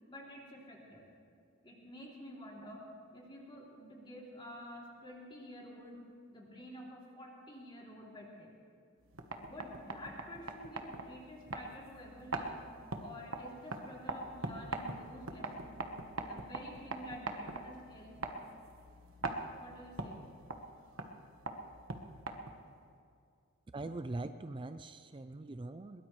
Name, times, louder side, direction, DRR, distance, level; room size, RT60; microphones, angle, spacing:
voice 1, 0.1-1.0 1.6-8.6 9.4-12.6 13.0-15.8 16.2-18.2 19.6-20.3, equal, 25° left, -3 dB, 3.0 m, -50 dB
sound 1, 9.0-22.8, right 2 dB, 65° right, 1.2 m, -43 dB
voice 2, 23.7-26.0, right 2 dB, 25° right, 10 dB, 0.4 m, -42 dB
21.5 x 20.5 x 3.2 m, 2.4 s
head